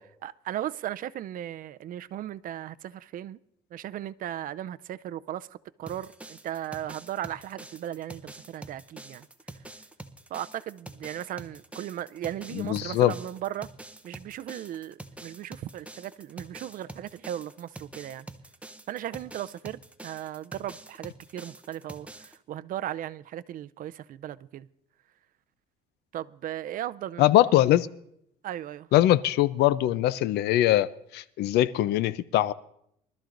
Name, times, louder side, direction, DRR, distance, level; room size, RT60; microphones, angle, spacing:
voice 1, 0.2-3.4 3.7-5.5 5.8-9.3 10.3-13.7 14.0-18.3 18.9-24.7 26.1-27.3 28.4-28.9, right 12 dB, 55° right, 0.5 m, -37 dB
sound 1, 5.9-22.4, right 2 dB, 5° right, 0.7 m, -46 dB
voice 2, 12.5-13.1 27.2-27.9 28.9-30.9 31.1-32.5, left 14 dB, 80° left, 0.6 m, -22 dB
23.5 x 12.5 x 2.6 m
cardioid pair, 110°, 17 cm